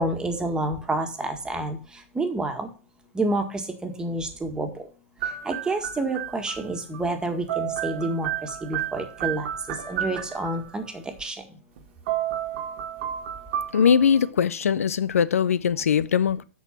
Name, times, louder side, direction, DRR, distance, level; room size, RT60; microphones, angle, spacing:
voice 1, 0.0-1.8 2.2-2.7 3.2-3.4 3.8-4.7 5.4-8.3 8.6-9.5 9.9-10.8 11.2-11.4, right 2 dB, 10° right, 1.8 m, -28 dB
sound 1, 5.2-7.0 7.2-10.9 11.8-11.9 12.1-14.2, right 10 dB, 55° right, 1.5 m, -31 dB
voice 2, 13.7-16.4, left 7 dB, 80° left, 0.6 m, -21 dB
8.2 x 6.3 x 5.9 m
hypercardioid pair, 120°, 8 cm